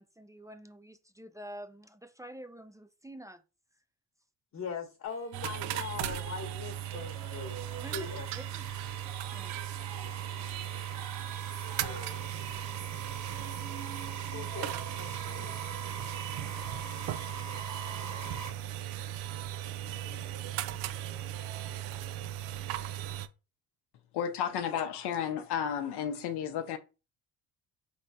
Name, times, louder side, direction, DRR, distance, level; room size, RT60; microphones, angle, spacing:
voice 1, 0.0-3.4 7.8-8.1 8.3-8.9 9.3-9.5, right 1 dB, 10° right, 0.4 m, -48 dB
voice 2, 4.5-8.3 9.9-10.5 11.5-12.2 14.3-15.5 17.9-18.6 19.8-20.3, left 5 dB, 40° left, 1.0 m, -43 dB
sound 1, 5.1-18.5, right 5 dB, 40° right, 1.0 m, -45 dB
sound 2, 5.3-23.3, right 12 dB, 85° right, 0.5 m, -37 dB
voice 3, 24.1-26.8, left 8 dB, 70° left, 0.7 m, -32 dB
4.2 x 3.4 x 2.7 m
supercardioid pair, 65°, 42 cm